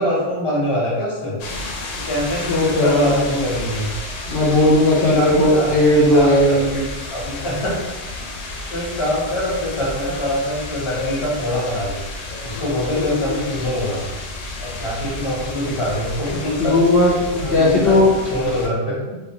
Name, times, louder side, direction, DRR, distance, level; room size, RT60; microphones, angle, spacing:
voice 1, 0.0-1.4 1.9-3.9 4.9-6.6 7.1-7.9 8.4-12.0 12.4-14.0 14.6-16.8 17.4-19.2, equal, 30° left, -6 dB, 0.9 m, -24 dB
sound 1, 1.4-18.7, left 2 dB, 90° left, 0.9 m, -31 dB
voice 2, 2.5-3.4 4.3-6.8 16.6-18.1, left 1 dB, 60° left, -7 dB, 0.8 m, -16 dB
2.5 x 2.5 x 2.8 m, 1.1 s
omnidirectional pair, 1.3 m